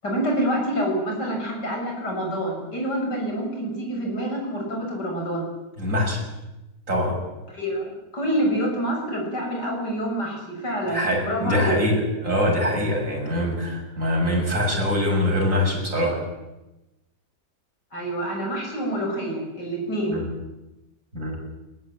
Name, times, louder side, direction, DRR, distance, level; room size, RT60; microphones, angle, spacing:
voice 1, 0.0-5.5 7.5-7.8 8.1-11.8 17.9-20.2, right 1 dB, 75° left, 0 dB, 7.3 m, -27 dB
voice 2, 5.8-6.3 6.9-7.2 10.9-16.2 20.1-20.3 21.1-21.4, left 1 dB, 45° right, -1 dB, 7.2 m, -23 dB
20.5 x 18.5 x 9.2 m, 0.98 s
omnidirectional pair, 1.8 m